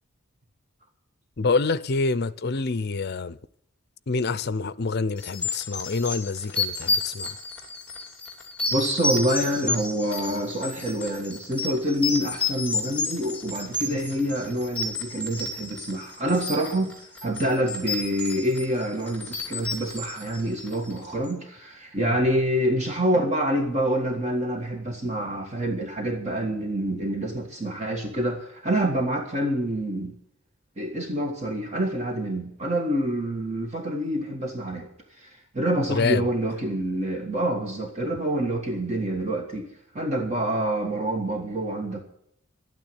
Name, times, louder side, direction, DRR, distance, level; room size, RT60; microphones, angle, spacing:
voice 1, 1.4-3.4 4.1-7.4 22.0-22.2 35.9-36.3, left 4 dB, 50° left, 0.6 m, -27 dB
sound 1, 5.2-21.0, left 3 dB, 5° left, 3.1 m, -31 dB
voice 2, 8.7-16.9 17.2-30.1 30.8-34.9 35.1-39.7 39.9-42.0, right 1 dB, 30° right, 1.6 m, -27 dB
12.0 x 9.3 x 8.7 m
head